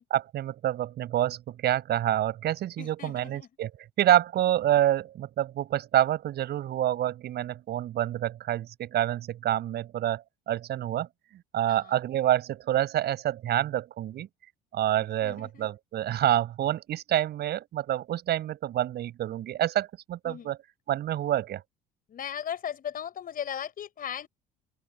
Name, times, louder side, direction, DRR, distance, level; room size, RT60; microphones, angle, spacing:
voice 1, 0.1-3.7 4.0-14.3 14.7-20.6 20.9-21.6, right 12 dB, 50° right, 7.0 m, -27 dB
voice 2, 2.8-3.5 11.7-12.0 15.2-15.7 20.2-20.5 22.1-24.3, left 9 dB, 45° left, 4.9 m, -37 dB
open air
figure-of-eight pair, 55°, 21 cm